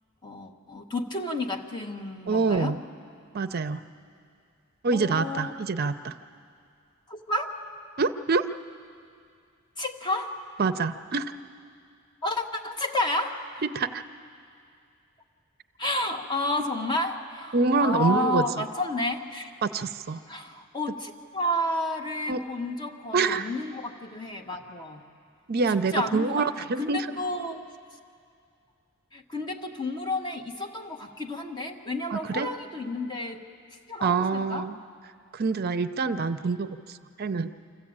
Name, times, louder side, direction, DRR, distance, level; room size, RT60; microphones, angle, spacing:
voice 1, 0.2-2.8 4.9-5.5 7.1-7.6 9.8-10.4 12.2-13.6 15.8-19.5 20.3-25.0 25.7-27.6 29.1-33.4 33.9-34.7, left 1 dB, 20° left, 2 dB, 1.4 m, -31 dB
voice 2, 2.3-2.8 3.3-3.8 4.8-6.1 8.0-8.4 10.6-11.3 13.7-14.0 17.5-18.6 19.6-20.2 22.3-22.4 23.1-23.5 25.5-27.1 32.1-32.5 34.0-34.8 35.3-37.5, right 4 dB, 50° right, 11 dB, 0.6 m, -26 dB
25.5 x 14.5 x 8.7 m, 2.3 s
head